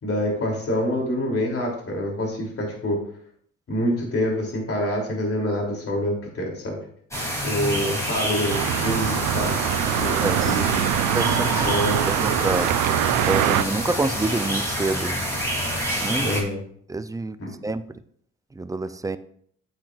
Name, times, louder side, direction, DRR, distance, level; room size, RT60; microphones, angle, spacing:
voice 1, 0.0-3.0 3.7-6.8 7.4-9.6 10.0-10.6 11.6-12.0 16.2-16.6 17.4-17.5, equal, 50° left, 3.1 m, -26 dB
sound 1, 7.1-16.4, equal, 10° left, 3.1 m, -27 dB
sound 2, 8.5-13.6, right 12 dB, 85° right, 0.5 m, -23 dB
voice 2, 10.2-10.5 11.1-11.7 12.0-12.7 13.3-15.2 16.0-16.3 16.9-17.4 17.6-17.8 18.6-19.2, right 3 dB, 10° right, 0.4 m, -27 dB
8.7 x 8.0 x 2.5 m
cardioid pair, 90°, 30 cm